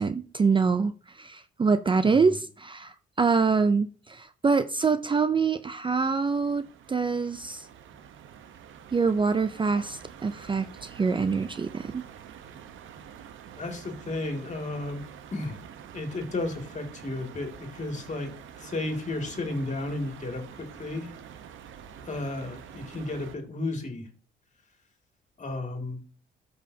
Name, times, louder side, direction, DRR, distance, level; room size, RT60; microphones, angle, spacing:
voice 1, 0.0-7.7 8.9-12.0, right 5 dB, 25° right, 12 dB, 0.5 m, -25 dB
sound 1, 5.4-23.4, right 8 dB, 80° right, 1.0 m, -47 dB
voice 2, 13.6-15.0 15.3-15.6 15.9-21.1 22.0-24.1 25.4-26.0, left 2 dB, 35° left, 4 dB, 2.3 m, -33 dB
12.5 x 5.5 x 2.8 m, 0.39 s
cardioid pair, 90°, 20 cm